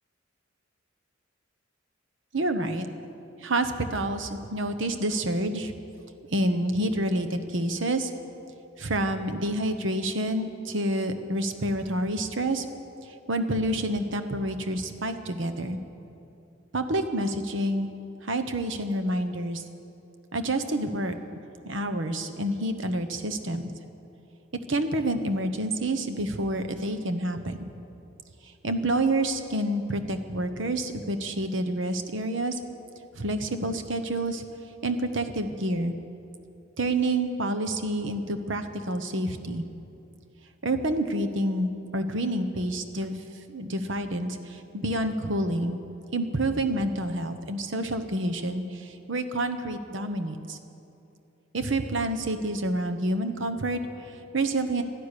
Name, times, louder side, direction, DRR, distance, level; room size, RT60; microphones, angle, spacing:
voice 1, 2.3-2.9 3.4-5.7 6.3-8.1 8.8-12.6 13.0-15.8 16.7-17.9 18.2-19.6 20.3-21.2 21.6-23.6 24.7-27.7 28.6-32.6 33.1-34.4 34.8-36.0 36.8-39.6 40.6-43.2 43.5-45.8 46.1-50.6 51.5-54.8, right 1 dB, 65° right, 8 dB, 1.1 m, -28 dB
12.5 x 11.5 x 10.0 m, 2.7 s
head